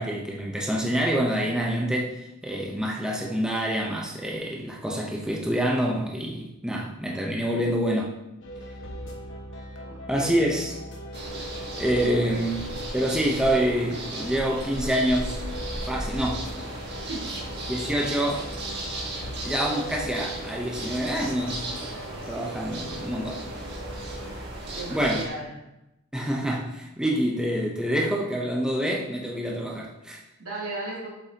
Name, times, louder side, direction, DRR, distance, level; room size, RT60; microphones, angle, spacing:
voice 1, 0.0-8.2 10.1-10.7 11.8-12.6 12.9-15.5 15.9-16.5 17.7-18.5 19.4-21.7 22.3-23.4 24.9-25.3 26.1-30.2, equal, 5° right, -2 dB, 0.7 m, -26 dB
sound 1, 8.4-24.5, equal, 60° left, 1.2 m, -40 dB
voice 2, 9.8-10.4 12.0-12.4 17.1-17.2 24.7-25.5 30.4-31.1, right 2 dB, 80° right, -5 dB, 2.8 m, -35 dB
sound 2, 11.1-25.3, right 1 dB, 50° right, 1.5 m, -36 dB
7.7 x 7.7 x 2.9 m, 0.89 s
head